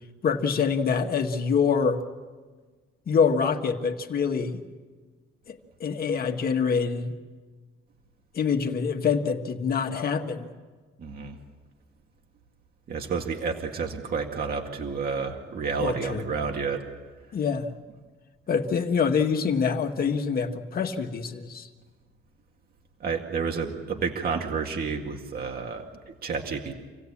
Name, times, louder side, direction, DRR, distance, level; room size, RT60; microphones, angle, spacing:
voice 1, 0.2-2.0 3.1-4.6 5.5-7.1 8.3-10.5 15.8-16.2 17.3-17.7 18.5-21.7, left 6 dB, 45° left, 5 dB, 1.7 m, -25 dB
voice 2, 11.0-11.4 12.9-16.8 23.0-26.7, right 5 dB, 45° right, 2 dB, 2.1 m, -30 dB
27.0 x 16.5 x 8.6 m, 1.4 s
cardioid pair, 145°, 21 cm